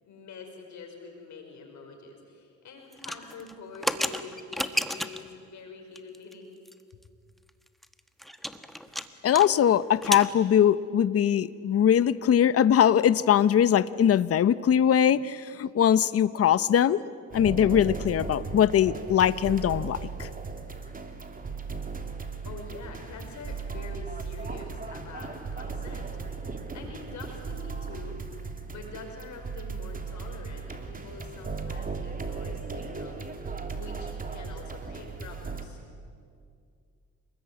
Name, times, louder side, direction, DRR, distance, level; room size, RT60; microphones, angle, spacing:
voice 1, 0.0-6.6 22.4-28.2 28.7-35.8, left 4 dB, 70° left, 3 dB, 5.4 m, -45 dB
sound 1, 2.9-5.3 6.0-6.3 6.7-6.8 7.0-7.1 7.5-9.5 9.7-10.3, equal, ahead, 1.4 m, -32 dB
voice 2, 9.2-17.0 17.3-20.3, left 9 dB, 50° left, 16 dB, 0.8 m, -22 dB
sound 2, 17.3-35.7, right 4 dB, 30° right, 3.1 m, -37 dB
28.5 x 20.5 x 9.6 m, 2.3 s
cardioid pair, 90°, 30 cm